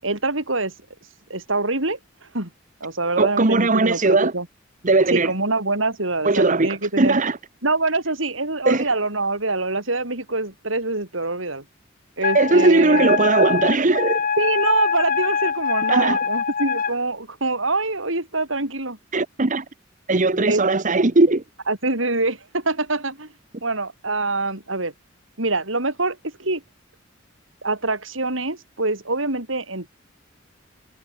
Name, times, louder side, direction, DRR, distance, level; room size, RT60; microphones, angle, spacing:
voice 1, 0.0-0.7 1.3-2.0 2.3-2.5 2.8-4.5 5.1-7.2 7.6-11.6 12.2-13.1 14.4-19.0 20.5-20.6 21.7-23.3 23.6-24.9 25.4-26.6 27.6-29.9, right 2 dB, 80° right, 7.4 m, -25 dB
voice 2, 3.2-4.3 4.8-5.3 6.2-7.4 8.6-8.9 12.3-14.2 15.9-16.2 19.1-19.6 20.1-21.4, right 3 dB, 40° right, 1.2 m, -18 dB
Wind instrument woodwind instrument, 12.2-16.9, left 6 dB, 45° left, 1.2 m, -24 dB
head